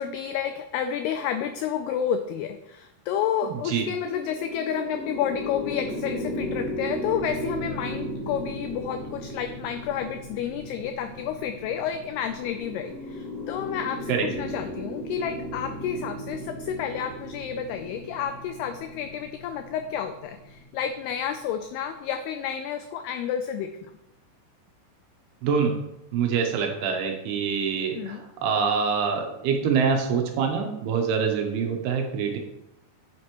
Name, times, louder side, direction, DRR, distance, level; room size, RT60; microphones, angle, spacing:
voice 1, 0.0-23.9 27.9-28.2, left 8 dB, 90° left, 8 dB, 2.3 m, -30 dB
voice 2, 3.4-3.9 14.1-14.3 25.4-25.8 26.1-32.4, right 6 dB, 75° right, 3 dB, 2.6 m, -25 dB
sound 1, 3.8-20.9, equal, 45° left, 1.2 m, -36 dB
8.8 x 7.7 x 3.0 m, 0.87 s
omnidirectional pair, 5.1 m